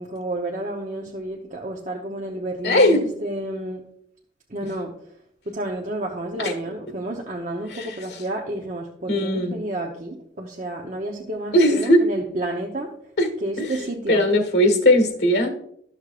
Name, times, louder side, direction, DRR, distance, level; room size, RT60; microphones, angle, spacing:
voice 1, 0.0-3.8 4.5-4.9 5.5-12.9 13.4-14.2, right 1 dB, 45° right, -1 dB, 0.8 m, -30 dB
voice 2, 2.6-3.0 6.4-6.5 7.7-7.9 9.1-9.5 11.5-12.1 13.2-13.3 13.6-13.7 14.1-15.5, left 1 dB, 75° left, 6 dB, 1.4 m, -18 dB
13.0 x 6.6 x 2.5 m, 0.69 s
head